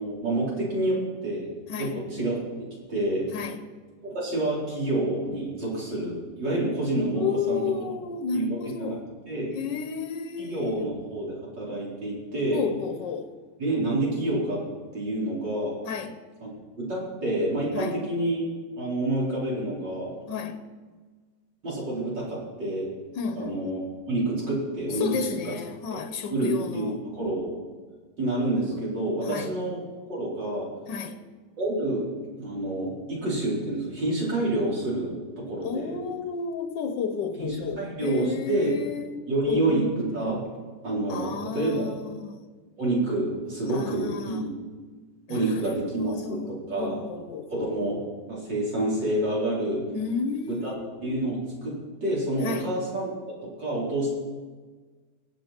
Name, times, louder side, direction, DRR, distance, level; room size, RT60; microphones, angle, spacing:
voice 1, 0.0-1.5 1.8-2.4 2.9-3.3 4.1-7.6 8.3-9.0 9.3-9.6 10.4-12.6 13.6-14.6 14.9-15.8 16.4-16.5 16.8-18.4 18.8-20.1 21.6-22.9 23.4-23.8 24.1-25.5 25.9-26.0 26.3-27.6 28.2-29.8 30.1-30.7 31.6-32.1 32.4-36.0 37.4-38.7 39.3-40.4 40.8-41.9 42.8-44.5 45.3-47.0 47.5-49.8 50.5-50.7 51.0-53.1 53.4-54.1, right 1 dB, 80° right, 5.1 m, -28 dB
voice 2, 3.3-3.6 7.1-9.1 9.5-10.9 12.5-13.4 15.8-16.2 17.7-18.0 20.3-20.6 23.2-23.6 25.0-27.0 29.2-29.5 30.9-31.2 35.6-39.8 41.1-42.4 43.7-44.4 45.3-45.4 46.0-47.7 49.9-50.9 52.4-52.7, left 6 dB, 80° left, 1.6 m, -32 dB
24.5 x 8.2 x 4.4 m
omnidirectional pair, 1.9 m